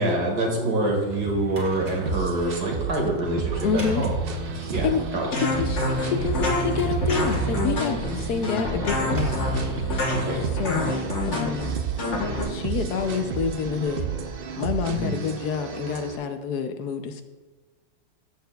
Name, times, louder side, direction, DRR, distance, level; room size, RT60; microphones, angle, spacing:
voice 1, 0.0-4.2 4.7-4.9 5.1-5.3 8.1-8.6 10.1-10.5 14.9-15.2, right 1 dB, 70° right, -1 dB, 2.4 m, -26 dB
Drawer open or close, 0.8-2.1 3.3-5.0 6.3-7.6 8.9-10.6, equal, 55° right, 2.5 m, -34 dB
sound 1, 2.1-16.2, right 7 dB, 85° right, 0.5 m, -32 dB
voice 2, 3.6-4.0 4.5-5.2 5.5-9.5 9.9-10.1 10.6-11.0 11.3-11.7 12.4-14.1 14.6-17.2, left 6 dB, 70° left, 8 dB, 1.1 m, -28 dB
sound 2, 5.3-12.4, left 1 dB, 45° left, 1.3 m, -27 dB
14.5 x 6.7 x 2.3 m, 1.3 s
omnidirectional pair, 1.8 m